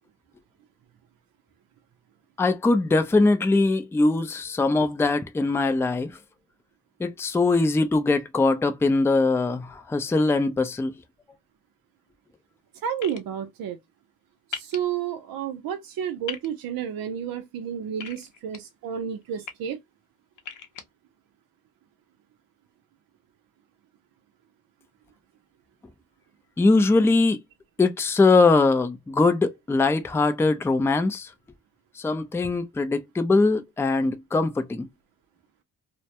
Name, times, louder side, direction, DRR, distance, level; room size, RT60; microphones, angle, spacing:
voice 1, 2.4-6.2 7.0-10.9 26.6-27.4 27.8-31.3 32.0-34.9, left 3 dB, 5° left, 0.4 m, -21 dB
voice 2, 12.8-13.8 14.5-19.8, right 8 dB, 70° right, 0.6 m, -31 dB
sound 1, 13.0-13.2 14.5-14.8 16.3-16.5 18.0-18.6 19.2-19.5 20.4-20.8, left 8 dB, 55° left, 0.7 m, -36 dB
2.2 x 2.1 x 2.7 m
supercardioid pair, 60°, 37 cm